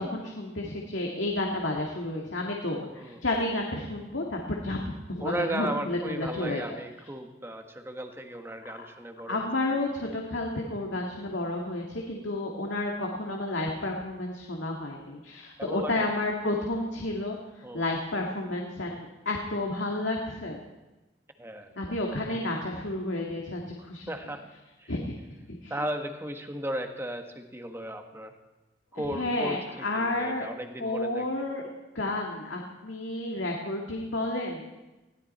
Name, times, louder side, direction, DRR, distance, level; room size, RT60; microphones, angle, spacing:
voice 1, 0.0-6.6 8.7-8.9 9.3-20.6 21.8-24.1 24.9-25.2 25.6-25.7 29.0-30.5 30.8-31.6 31.9-34.6, left 2 dB, 85° left, 0 dB, 2.1 m, -31 dB
voice 2, 5.2-9.8 15.6-16.1 17.6-17.8 21.4-21.7 24.1-24.5 24.8-24.9 25.7-28.3 28.9-31.5, right 1 dB, 15° right, 5 dB, 1.4 m, -36 dB
20.5 x 16.5 x 4.3 m, 1.1 s
head